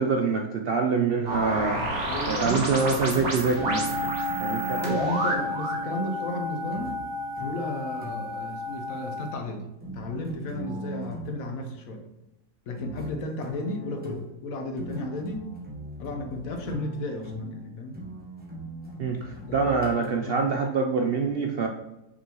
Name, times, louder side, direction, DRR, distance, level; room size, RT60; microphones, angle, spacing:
voice 1, 0.0-1.8 2.3-3.9 4.4-4.8 19.0-21.7, right 4 dB, 60° right, 3 dB, 0.6 m, -25 dB
sound 1, 1.3-5.9, right 1 dB, 90° right, 1.9 m, -30 dB
sound 2, 1.8-2.2 3.1-5.2 6.7-8.5 9.8-11.5 12.8-20.6, left 1 dB, 5° right, 1.1 m, -40 dB
voice 2, 2.1-2.7 4.7-7.0 7.4-12.1 12.7-15.5 16.0-18.0 19.5-19.7, left 1 dB, 75° left, 4 dB, 1.3 m, -33 dB
sound 3, 3.6-9.3, left 2 dB, 45° right, 1.7 m, -32 dB
6.1 x 5.4 x 3.0 m, 0.91 s
omnidirectional pair, 1.5 m